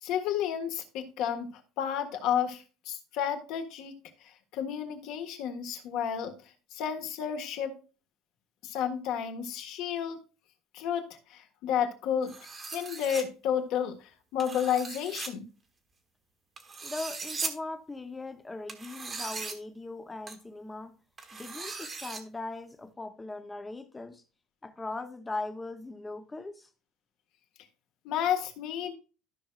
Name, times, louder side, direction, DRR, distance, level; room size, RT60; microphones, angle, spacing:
voice 1, 0.0-1.5 1.8-3.9 4.2-6.3 6.7-7.7 8.6-10.2 10.7-12.3 12.7-15.5 28.0-28.9, left 9 dB, 55° left, 1.6 m, -31 dB
sound 1, 12.3-13.2 14.4-15.3 16.6-17.5 18.7-19.5 20.3-20.4 21.2-22.2, right 4 dB, 20° right, 1.2 m, -38 dB
voice 2, 16.8-20.9 21.3-24.2 24.6-26.7, left 2 dB, 10° left, 0.8 m, -39 dB
13.5 x 6.1 x 2.4 m
cardioid pair, 170°, 0 cm